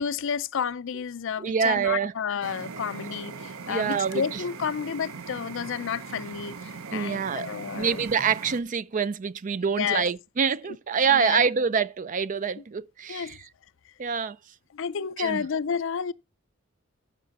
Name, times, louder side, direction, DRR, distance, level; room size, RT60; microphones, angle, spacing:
voice 1, 0.0-8.0 9.8-10.1 10.7-10.8 11.1-11.4 13.1-13.3 14.7-16.1, left 7 dB, 65° left, 0.5 m, -31 dB
voice 2, 1.4-2.1 3.7-4.5 6.9-7.5 7.7-13.4 14.0-14.4 15.2-15.4, right 6 dB, 40° right, 0.4 m, -26 dB
sound 1, 2.4-8.6, right 5 dB, 85° right, 0.8 m, -40 dB
11.0 x 5.9 x 4.1 m
head